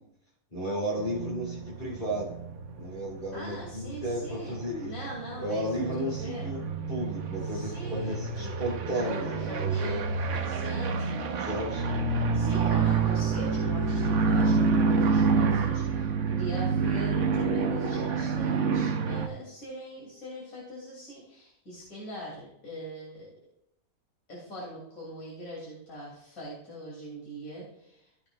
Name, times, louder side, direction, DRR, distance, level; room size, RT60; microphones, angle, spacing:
voice 1, 0.5-2.3 2.8-4.9 5.4-10.0 11.4-11.8, equal, 30° left, -6 dB, 2.9 m, -33 dB
sound 1, 1.0-19.3, right 4 dB, 60° right, 1.1 m, -28 dB
voice 2, 3.3-6.5 7.4-8.6 8.9-11.3 12.2-23.3 24.3-28.1, equal, 65° left, -6 dB, 3.4 m, -42 dB
14.5 x 7.9 x 2.4 m, 0.75 s
omnidirectional pair, 1.5 m